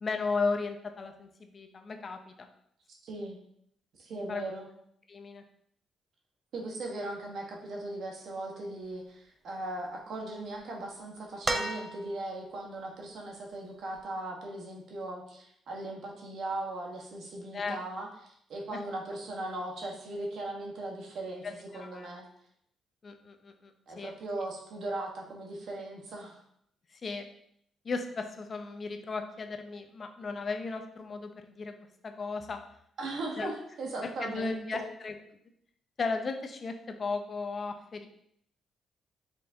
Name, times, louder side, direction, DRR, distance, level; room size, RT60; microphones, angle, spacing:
voice 1, 0.0-2.5 4.1-4.4 5.1-5.4 17.5-17.8 18.7-18.8 21.4-22.1 23.0-24.1 26.9-27.3 27.8-31.7 32.0-32.6 33.4-33.5 34.0-35.1 36.0-38.1, left 4 dB, 40° left, 6 dB, 0.5 m, -35 dB
voice 2, 3.0-3.4 4.0-4.7 6.5-22.2 23.9-26.4 33.0-34.8, right 2 dB, 65° right, 0 dB, 1.1 m, -38 dB
sound 1, 11.4-12.5 14.0-14.1, right 1 dB, 15° right, 0.5 m, -33 dB
5.1 x 3.3 x 2.6 m, 0.71 s
cardioid pair, 90°, 0 cm